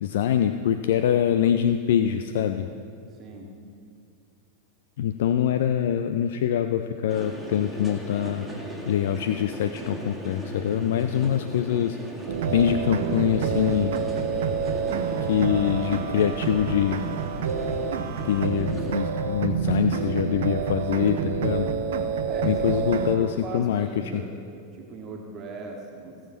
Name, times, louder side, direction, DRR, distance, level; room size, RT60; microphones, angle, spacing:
voice 1, 0.0-2.7 5.0-8.5 8.9-12.0 12.5-13.9 15.3-17.0 18.2-21.7 22.4-23.9 24.1-24.2, left 10 dB, 55° left, 9 dB, 0.4 m, -24 dB
voice 2, 3.1-3.5 16.0-16.4 22.2-24.4 24.7-26.2, right 3 dB, 30° right, 0 dB, 1.6 m, -39 dB
sound 1, 7.1-18.9, equal, ahead, 2.1 m, -37 dB
sound 2, 12.3-23.2, right 6 dB, 60° right, 0.9 m, -28 dB
17.0 x 7.3 x 5.9 m, 2.4 s
figure-of-eight pair, 90°, 0 cm